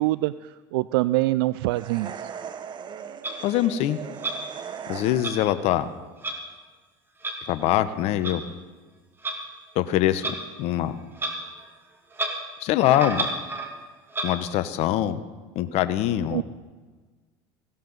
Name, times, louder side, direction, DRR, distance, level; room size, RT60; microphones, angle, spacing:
voice 1, 0.0-2.3 16.3-16.4, right 19 dB, 80° right, 16 dB, 0.4 m, -25 dB
sound 1, 1.7-5.6, right 7 dB, 40° right, 1.1 m, -38 dB
Clock, 3.2-3.3 4.2-4.4 5.2-5.3 6.2-6.4 7.2-7.3 8.2-8.3 9.2-9.4 10.2-10.4 11.1-11.3 11.6-11.7 12.1-12.3 12.8-13.7 14.1-14.3, right 2 dB, 20° right, 2.8 m, -29 dB
voice 2, 3.4-4.0 4.9-5.9 7.5-8.4 9.7-11.0 12.6-13.3 14.2-15.2 15.5-16.4, left 12 dB, 60° left, 12 dB, 0.9 m, -23 dB
18.0 x 16.5 x 4.0 m, 1.4 s
supercardioid pair, 90°, 12 cm